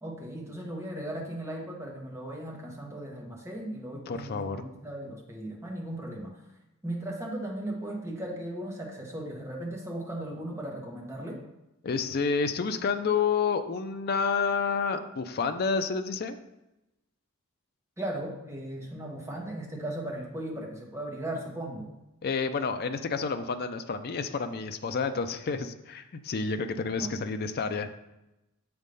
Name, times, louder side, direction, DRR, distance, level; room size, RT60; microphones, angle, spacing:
voice 1, 0.0-6.4 6.8-11.4 18.0-21.9 27.0-27.2, right 1 dB, 15° right, -2 dB, 1.3 m, -37 dB
voice 2, 4.1-4.6 11.8-16.4 22.2-27.9, left 5 dB, 50° left, 8 dB, 0.5 m, -29 dB
7.4 x 3.4 x 5.3 m, 0.93 s
head